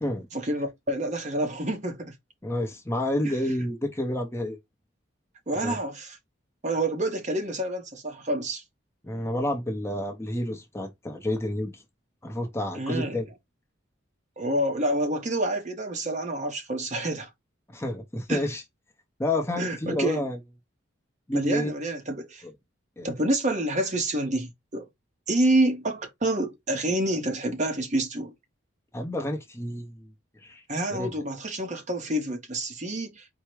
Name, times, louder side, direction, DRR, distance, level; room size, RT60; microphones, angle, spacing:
voice 1, 0.3-2.1 3.2-3.4 5.5-6.2 6.6-8.6 12.7-13.2 14.4-17.3 18.3-18.4 19.6-20.2 21.3-22.4 23.0-24.9 25.3-28.3 30.7-33.3, right 1 dB, 35° right, 1.0 m, -28 dB
voice 2, 2.4-4.6 5.5-5.8 9.0-11.8 12.2-13.2 17.7-18.6 19.2-20.4 21.3-21.7 22.4-22.5 23.0-23.1 28.9-30.1 30.4-30.6 30.9-31.1, left 1 dB, 15° left, 0.7 m, -29 dB
4.5 x 2.1 x 4.6 m
head